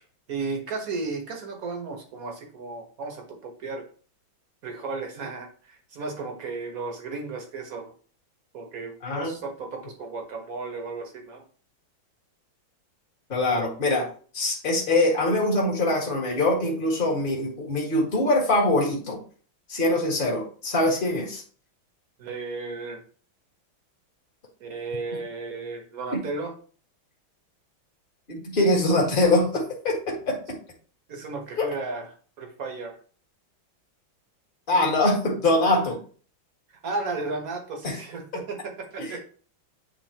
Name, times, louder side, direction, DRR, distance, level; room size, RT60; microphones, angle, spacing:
voice 1, 0.3-3.8 4.6-7.9 8.5-11.4 22.2-23.0 24.6-26.5 31.1-32.1 32.4-33.0 35.7-35.8 36.7-39.2, right 3 dB, 50° right, 3 dB, 1.6 m, -34 dB
voice 2, 9.0-9.4 13.3-14.1 14.3-19.2 19.7-21.4 26.1-26.2 28.3-30.6 31.6-31.7 34.7-36.0 37.8-38.0 39.0-39.1, left 2 dB, 25° left, -1 dB, 1.7 m, -23 dB
9.2 x 3.9 x 2.9 m, 0.42 s
omnidirectional pair, 2.2 m